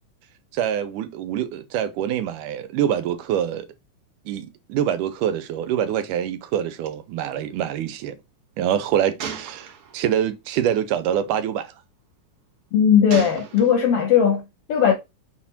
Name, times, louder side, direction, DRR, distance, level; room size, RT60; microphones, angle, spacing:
voice 1, 0.5-3.7 4.3-8.2 8.6-11.7, right 10 dB, 85° right, 2.3 m, -25 dB
Gunshot gunfire, 6.9-7.0 7.2-7.4 9.2-10.2 10.9-11.1 13.1-14.0, right 7 dB, 55° right, 1.7 m, -35 dB
voice 2, 12.7-14.9, left 8 dB, 65° left, 1.5 m, -18 dB
6.6 x 4.3 x 4.3 m
omnidirectional pair, 3.7 m